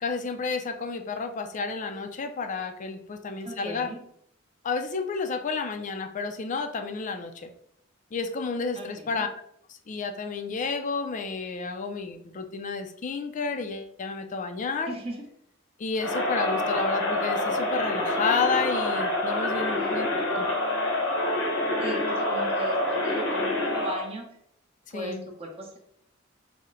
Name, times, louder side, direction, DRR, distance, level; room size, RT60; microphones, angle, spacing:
voice 1, 0.0-3.9 4.6-7.5 8.1-9.3 9.7-14.9 15.8-20.1 20.4-20.5 24.9-25.3, left 4 dB, 40° left, 7 dB, 0.4 m, -31 dB
voice 2, 3.4-4.0 8.7-9.2 14.9-15.3 19.7-20.2 21.8-24.2 24.9-25.8, right 1 dB, 30° right, 0 dB, 0.7 m, -37 dB
Crowd, 16.0-24.1, left 1 dB, 90° left, 1.1 m, -27 dB
4.2 x 2.1 x 3.7 m, 0.70 s
head